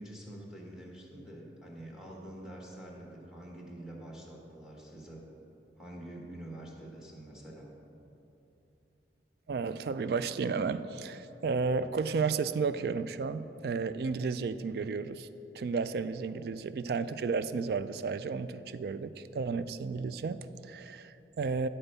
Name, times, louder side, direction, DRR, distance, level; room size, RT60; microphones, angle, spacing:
voice 1, 0.0-5.2 5.8-7.8, right 1 dB, 5° right, -1 dB, 1.2 m, -46 dB
voice 2, 9.5-15.3 15.5-21.7, right 5 dB, 60° right, 13 dB, 0.3 m, -33 dB
10.5 x 4.4 x 6.7 m, 2.9 s
head